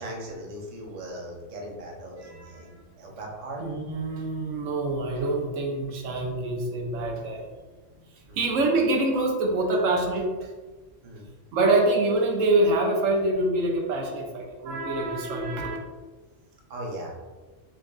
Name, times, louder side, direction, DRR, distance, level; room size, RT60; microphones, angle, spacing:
voice 1, 0.0-3.6 8.3-8.5 11.0-11.3 16.7-17.1, right 1 dB, 40° right, -1 dB, 0.7 m, -38 dB
voice 2, 2.2-2.7 3.6-7.4 8.4-10.5 11.5-15.8, right 2 dB, 85° right, 1 dB, 1.0 m, -25 dB
6.1 x 2.4 x 2.3 m, 1.3 s
omnidirectional pair, 1.3 m